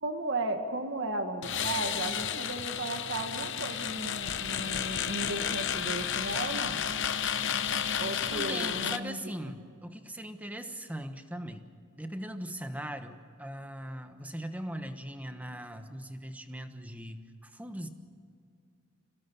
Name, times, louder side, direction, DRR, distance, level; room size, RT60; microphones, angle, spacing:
voice 1, 0.0-6.8 8.0-9.2, right 2 dB, 55° right, 5 dB, 1.8 m, -35 dB
sound 1, 1.4-9.0, left 8 dB, 55° left, 0.9 m, -32 dB
voice 2, 8.3-11.7 11.9-17.9, right 1 dB, 5° right, 7 dB, 1.2 m, -40 dB
26.5 x 17.5 x 7.1 m, 2.3 s
head